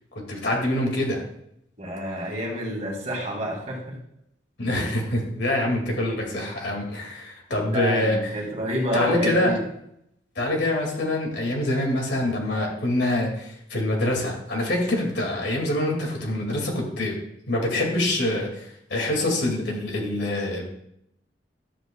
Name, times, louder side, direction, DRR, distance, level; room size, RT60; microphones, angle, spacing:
voice 1, 0.3-1.2 4.6-8.4 8.9-9.5 10.4-17.2 17.5-20.7, left 1 dB, 70° left, 0 dB, 2.3 m, -25 dB
voice 2, 1.8-3.8 7.6-9.6, equal, 40° right, -1 dB, 2.2 m, -28 dB
11.5 x 8.1 x 2.3 m, 0.76 s
head